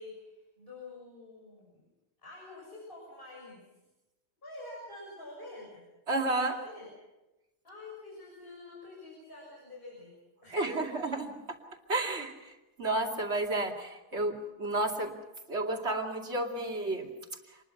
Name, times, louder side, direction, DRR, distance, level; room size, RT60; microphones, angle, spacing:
voice 1, 0.0-1.7 2.2-3.6 4.4-5.8 6.2-6.9 7.6-10.1 10.4-11.0, left 2 dB, 50° left, -4 dB, 7.1 m, -47 dB
voice 2, 6.1-6.6 10.5-11.3 11.9-15.1 15.5-17.1, right 2 dB, 70° right, 2 dB, 2.9 m, -31 dB
27.0 x 21.0 x 5.9 m, 1.0 s
omnidirectional pair, 1.2 m